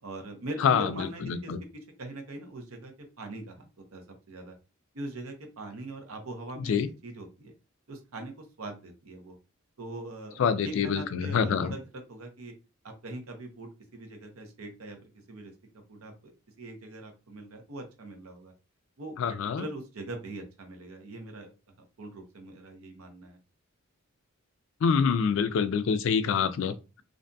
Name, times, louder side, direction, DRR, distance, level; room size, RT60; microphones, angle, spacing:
voice 1, 0.0-1.5 2.0-4.5 4.9-6.8 7.0-7.5 7.9-9.4 9.8-10.4 10.6-12.5 12.8-15.5 15.9-16.3 16.6-18.5 19.0-23.4, right 2 dB, 90° right, 0.8 m, -42 dB
voice 2, 0.6-1.6 6.6-6.9 10.4-11.7 19.2-19.7 24.8-27.0, left 6 dB, 65° left, 0.3 m, -26 dB
2.5 x 2.3 x 2.5 m
head